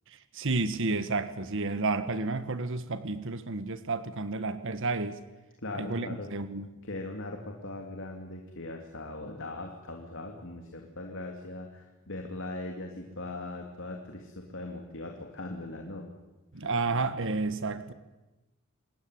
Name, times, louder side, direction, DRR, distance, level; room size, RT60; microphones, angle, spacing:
voice 1, 0.3-5.2 5.7-6.7 16.5-17.9, right 3 dB, 65° right, 11 dB, 1.5 m, -31 dB
voice 2, 5.6-6.3 6.8-16.1 16.5-16.6, left 2 dB, 65° left, 2 dB, 3.0 m, -40 dB
27.5 x 20.0 x 9.5 m, 1.1 s
head